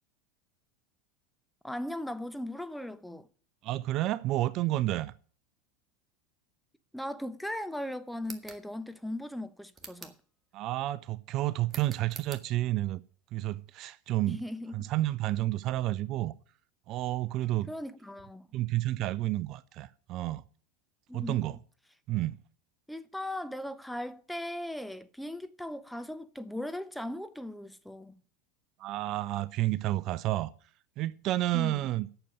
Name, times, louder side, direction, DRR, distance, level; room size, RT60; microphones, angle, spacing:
voice 1, 1.6-3.3 6.9-10.1 14.3-14.9 17.7-18.5 21.1-21.5 22.9-28.2 31.5-31.8, left 1 dB, ahead, 0.9 m, -38 dB
voice 2, 3.6-5.1 10.5-13.0 13.3-14.4 14.7-16.3 16.9-17.7 18.5-20.5 21.1-21.6 22.1-22.4 28.8-30.5 31.0-32.1, right 16 dB, 50° right, 0.5 m, -30 dB
sound 1, 8.2-8.6 9.7-10.2 11.7-12.5, right 4 dB, 25° right, 1.9 m, -46 dB
8.9 x 6.7 x 7.8 m
hypercardioid pair, 90°, 0 cm